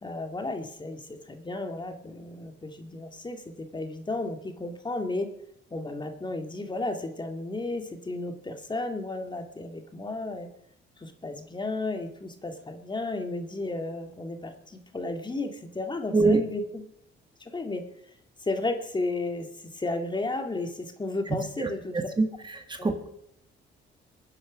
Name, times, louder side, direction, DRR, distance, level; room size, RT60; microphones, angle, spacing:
voice 1, 0.0-5.3 5.7-10.5 11.0-16.8 17.4-17.8 18.4-22.0 22.8-22.9, left 2 dB, 20° left, 6 dB, 2.0 m, -33 dB
voice 2, 16.1-16.4 21.6-21.7 22.2-22.3 22.8-23.1, right 3 dB, 25° right, 6 dB, 1.7 m, -22 dB
23.0 x 10.0 x 5.2 m, 0.75 s
cardioid pair, 90°, 20 cm